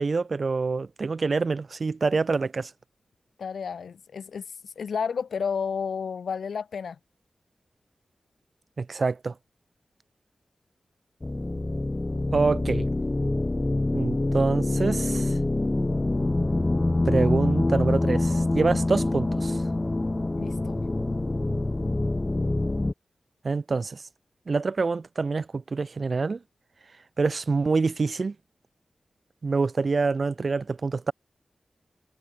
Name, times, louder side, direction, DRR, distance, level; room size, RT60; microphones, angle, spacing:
voice 1, 0.0-2.7 8.8-9.3 12.3-12.9 13.9-15.4 17.0-19.6 23.4-24.0 24.5-26.4 27.2-28.3 29.4-31.1, right 4 dB, 60° right, 1.1 m, -26 dB
voice 2, 3.4-7.0 20.3-20.8, left 6 dB, 85° left, 2.2 m, -32 dB
sound 1, 11.2-22.9, left 2 dB, 30° left, 4.6 m, -25 dB
cardioid pair, 45°, 0 cm